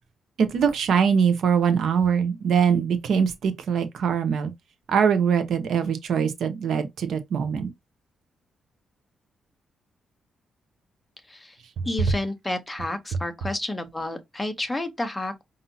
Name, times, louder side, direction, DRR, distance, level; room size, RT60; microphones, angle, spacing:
voice 1, 0.4-4.5 4.9-7.7, right 7 dB, 60° right, 0.7 m, -22 dB
voice 2, 11.8-15.4, left 2 dB, 10° left, 0.8 m, -30 dB
5.6 x 2.6 x 2.7 m
wide cardioid pair, 170°, 0 cm